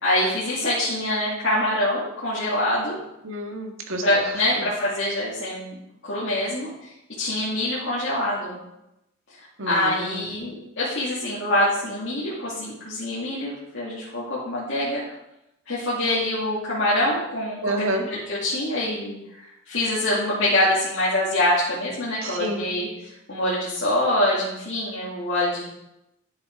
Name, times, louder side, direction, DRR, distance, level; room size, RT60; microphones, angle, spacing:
voice 1, 0.0-3.0 4.0-5.8 6.0-6.7 7.2-8.6 9.6-15.0 15.7-17.7 18.1-19.2 19.7-22.9 23.3-25.7, left 1 dB, 60° left, -9 dB, 2.4 m, -24 dB
voice 2, 3.2-4.2 4.6-4.7 9.6-10.3 17.6-18.0 22.2-22.6, right 1 dB, 75° right, 2 dB, 1.7 m, -29 dB
10.5 x 7.1 x 4.7 m, 0.88 s
head